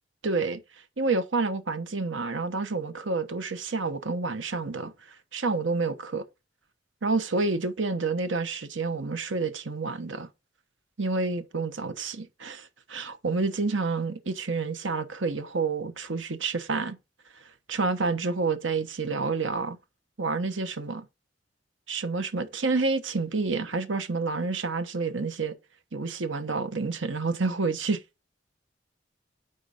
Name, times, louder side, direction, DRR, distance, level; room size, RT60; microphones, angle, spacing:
voice 1, 0.2-0.6 1.0-6.2 7.0-10.3 11.0-17.0 17.7-19.8 20.2-21.1 21.9-25.6 25.9-28.0, right 3 dB, 80° right, 1.1 m, -29 dB
9.6 x 3.8 x 5.0 m
head